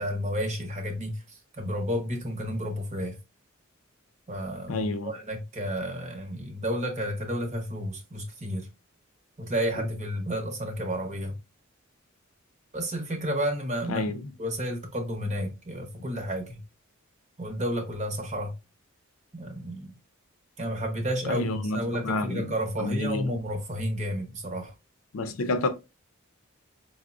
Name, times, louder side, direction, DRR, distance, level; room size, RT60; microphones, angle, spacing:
voice 1, 0.0-3.2 4.3-8.7 9.4-11.4 12.7-14.1 14.4-16.6 17.4-18.6 19.3-20.0 20.6-24.7, equal, 35° right, 0.8 m, -31 dB
voice 2, 4.7-5.1 13.9-14.3 21.3-22.5 22.8-23.4 25.1-25.7, left 2 dB, 75° left, 0.5 m, -29 dB
4.7 x 2.0 x 2.4 m
head